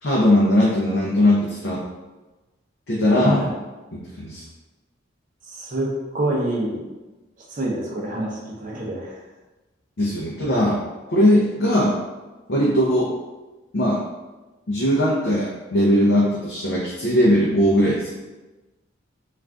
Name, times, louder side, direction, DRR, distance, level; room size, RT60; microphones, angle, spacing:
voice 1, 0.0-1.8 2.9-3.4 3.9-4.4 10.0-10.8 11.1-12.0 12.5-13.1 13.7-14.0 14.7-18.0, left 1 dB, 55° left, -6 dB, 0.5 m, -19 dB
voice 2, 3.2-3.5 5.5-6.8 7.5-9.2, right 1 dB, 40° right, -2 dB, 0.6 m, -26 dB
2.5 x 2.4 x 3.3 m, 1.1 s
head